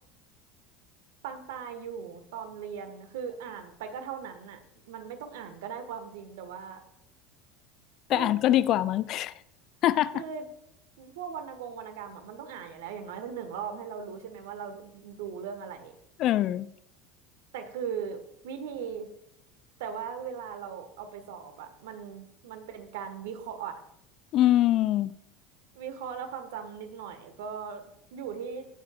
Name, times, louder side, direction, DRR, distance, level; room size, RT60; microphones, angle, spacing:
voice 1, 1.2-4.6 4.9-6.8 8.1-8.4 10.1-10.4 11.0-15.9 17.5-19.1 19.8-23.8 25.7-28.7, right 7 dB, 70° right, 1.4 m, -39 dB
voice 2, 8.1-9.3 9.8-10.2 16.2-16.7 24.3-25.1, left 13 dB, 50° left, 0.4 m, -23 dB
17.5 x 7.4 x 2.4 m
hypercardioid pair, 75°, 0 cm